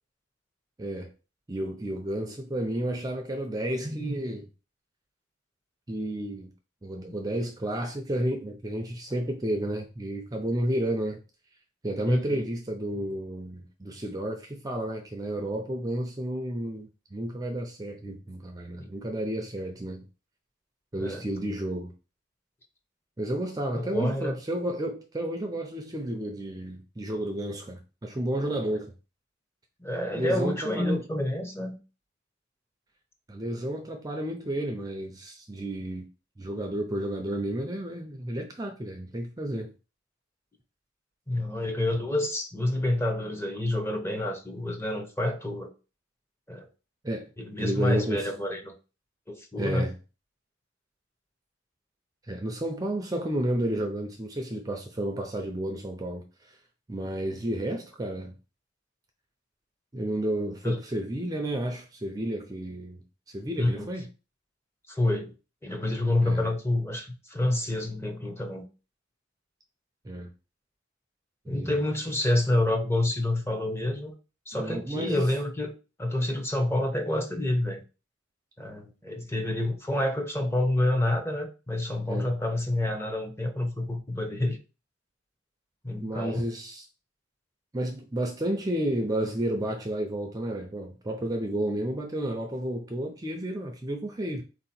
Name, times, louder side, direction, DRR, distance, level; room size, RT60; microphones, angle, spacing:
voice 1, 0.8-1.1 1.5-4.5 5.9-6.5 6.8-11.2 11.8-20.1 20.9-21.9 23.2-28.9 30.1-31.0 33.3-36.1 36.4-39.7 47.0-47.3 47.6-48.3 49.6-49.9 52.3-56.6 56.9-58.3 59.9-64.1 66.2-66.4 70.0-70.3 71.4-71.8 74.5-75.2 82.1-82.3 86.0-86.9 87.7-94.4, right 1 dB, 20° right, 0.5 m, -31 dB
voice 2, 12.1-12.4 18.8-18.9 21.0-21.2 23.7-24.3 29.8-31.8 41.3-45.7 46.5-46.7 47.4-48.7 49.3-49.9 60.6-60.8 63.6-63.9 64.9-65.3 65.6-68.7 71.5-74.1 74.5-75.7 76.0-77.8 78.6-84.6 85.8-86.4, left 1 dB, 15° left, 0.8 m, -28 dB
4.1 x 2.9 x 4.2 m
head